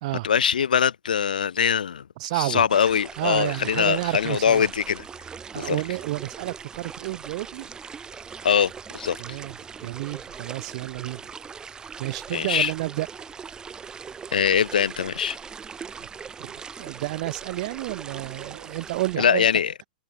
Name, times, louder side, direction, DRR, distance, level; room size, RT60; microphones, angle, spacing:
voice 1, 0.2-2.1 2.3-5.0 5.6-5.8 8.4-9.4 12.3-12.7 14.3-15.4 19.2-19.7, left 7 dB, 85° left, 0.4 m, -22 dB
voice 2, 2.2-2.7 3.2-4.7 5.5-7.7 9.2-11.2 12.0-13.1 16.4-19.5, right 19 dB, 55° right, 1.1 m, -30 dB
sound 1, 2.7-19.2, right 6 dB, 15° right, 2.0 m, -40 dB
hypercardioid pair, 115°, 5 cm